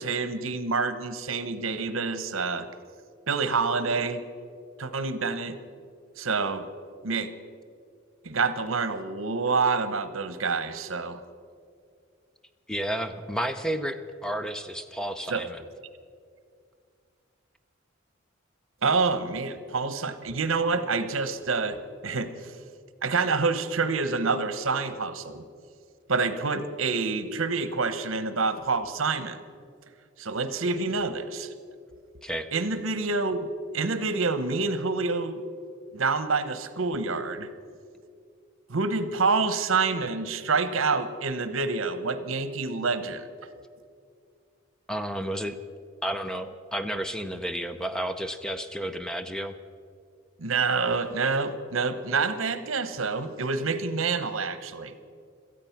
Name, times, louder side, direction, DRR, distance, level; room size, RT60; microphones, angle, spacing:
voice 1, 0.0-2.7 3.3-4.2 4.8-5.6 6.2-6.7 7.0-7.3 8.2-11.2 15.3-15.4 18.8-21.8 22.0-22.5 23.0-25.4 26.1-29.4 30.2-31.5 32.5-33.4 33.7-35.4 35.9-37.5 38.7-43.2 50.4-54.9, right 4 dB, 80° right, 12 dB, 1.0 m, -27 dB
voice 2, 12.7-15.7 32.2-32.5 44.9-45.6 46.0-49.5, equal, 5° left, 9 dB, 0.6 m, -31 dB
17.5 x 13.5 x 5.9 m, 2.2 s
head